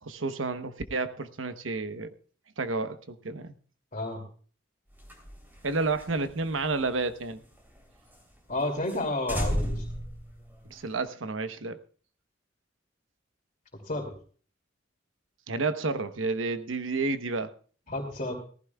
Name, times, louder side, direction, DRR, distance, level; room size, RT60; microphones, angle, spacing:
voice 1, 0.0-2.1 2.6-3.5 5.6-7.4 10.7-11.8 15.5-17.5, right 3 dB, 85° right, 9 dB, 1.0 m, -30 dB
voice 2, 3.9-4.2 8.5-9.9 13.9-14.1 17.9-18.3, left 2 dB, 40° left, 1 dB, 2.7 m, -31 dB
sound 1, 4.9-7.8 8.1-8.2 8.5-8.6 8.9-9.0 9.3-11.0, equal, 10° right, 3.3 m, -34 dB
18.5 x 15.0 x 2.3 m, 0.42 s
head